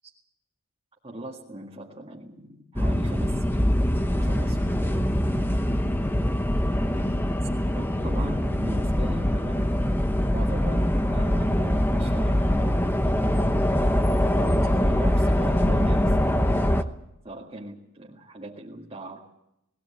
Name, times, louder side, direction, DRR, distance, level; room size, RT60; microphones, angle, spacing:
voice 1, 1.0-3.9 4.1-5.1 7.7-9.9 10.3-12.9 14.3-17.0 17.2-19.3, right 1 dB, 25° right, -3 dB, 1.9 m, -40 dB
sound 1, 2.8-16.8, equal, 10° left, 0.9 m, -23 dB
20.0 x 17.5 x 8.5 m, 0.87 s
head